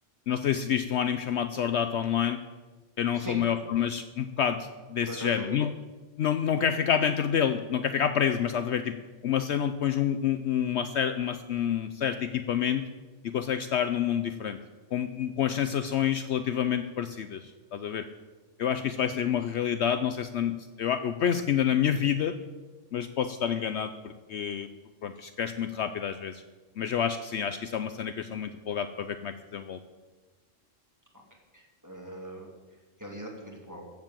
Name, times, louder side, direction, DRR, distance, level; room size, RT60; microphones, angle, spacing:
voice 1, 0.3-2.4 3.0-5.7 6.2-9.0 9.2-12.8 13.2-14.6 14.9-18.1 18.6-22.3 22.9-24.7 25.0-26.4 26.8-29.8, left 8 dB, 65° left, 10 dB, 0.8 m, -28 dB
voice 2, 5.0-5.6 18.7-18.8 31.1-31.2 31.5-32.5 33.0-33.9, equal, 15° right, 0 dB, 2.6 m, -40 dB
14.5 x 7.5 x 7.4 m, 1.3 s
omnidirectional pair, 1.3 m